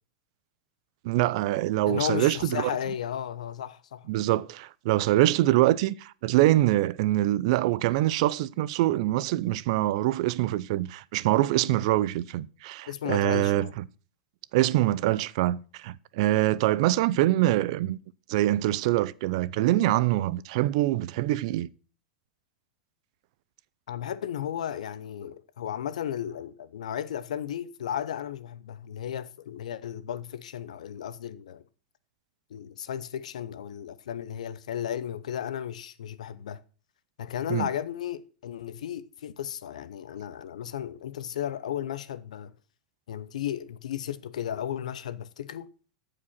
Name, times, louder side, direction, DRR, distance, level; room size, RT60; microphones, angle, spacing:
voice 1, 1.0-2.7 4.1-13.8 14.5-18.0 18.3-21.7 37.5-37.7, right 15 dB, 60° right, 0.5 m, -24 dB
voice 2, 1.9-4.1 11.7-11.8 12.9-13.7 23.9-31.6 32.5-36.6 37.2-42.5 43.1-45.7, left 10 dB, 85° left, 0.7 m, -34 dB
14.5 x 5.0 x 4.3 m
hypercardioid pair, 125°, 4 cm